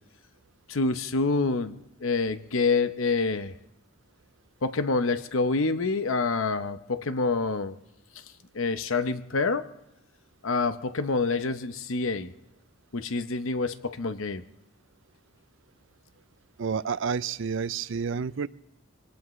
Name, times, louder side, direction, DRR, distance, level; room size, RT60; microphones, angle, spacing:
voice 1, 0.7-3.5 4.6-7.8 8.5-9.7 10.4-12.3 12.9-14.4, left 3 dB, 80° left, 11 dB, 0.8 m, -27 dB
voice 2, 16.6-18.5, right 6 dB, 65° right, 16 dB, 0.5 m, -29 dB
24.0 x 18.5 x 3.2 m, 0.91 s
head